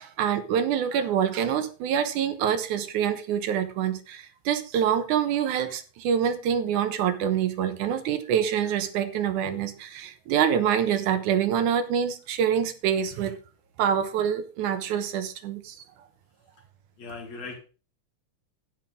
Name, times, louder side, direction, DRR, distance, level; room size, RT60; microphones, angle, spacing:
voice 1, 0.0-13.4 13.8-15.8, right 8 dB, 80° right, 2.5 m, -26 dB
voice 2, 17.0-17.6, left 4 dB, 60° left, 3.5 m, -38 dB
12.0 x 9.2 x 3.7 m
omnidirectional pair, 3.5 m